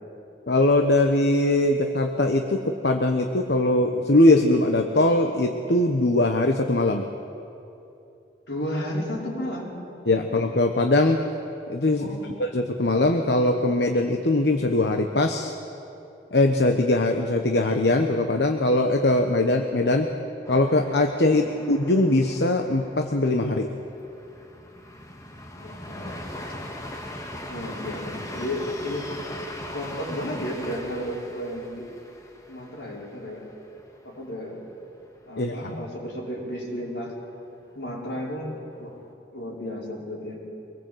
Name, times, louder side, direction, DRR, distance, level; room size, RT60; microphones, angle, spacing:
voice 1, 0.5-7.1 10.1-11.2 11.7-12.1 12.4-15.5 16.3-20.1 20.5-23.7 35.4-35.7, left 2 dB, 70° left, 4 dB, 1.1 m, -21 dB
voice 2, 8.5-9.8 12.0-12.4 21.3-21.6 25.6-26.1 27.5-29.1 29.7-31.9 32.5-33.5 34.0-34.6 35.3-37.1 37.7-39.0 39.3-40.4, equal, 90° left, -3 dB, 5.4 m, -33 dB
sound 1, 20.4-34.2 34.5-34.6 35.0-35.5, left 1 dB, 20° left, 1.8 m, -40 dB
24.5 x 19.5 x 8.0 m, 2.8 s
head